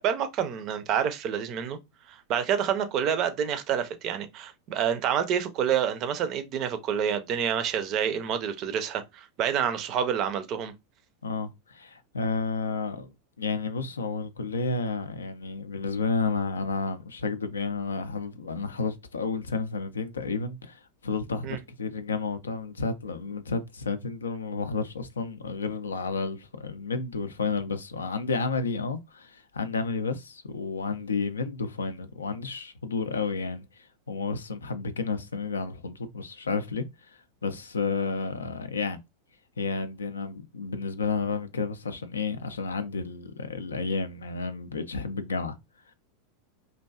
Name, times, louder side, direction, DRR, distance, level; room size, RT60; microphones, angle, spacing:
voice 1, 0.0-1.8 2.1-10.7 21.4-21.6, right 8 dB, 40° right, 0.4 m, -28 dB
voice 2, 11.2-39.0 39.6-45.6, left 4 dB, 75° left, 0.3 m, -31 dB
2.5 x 2.2 x 2.3 m
figure-of-eight pair, 90°, 0 cm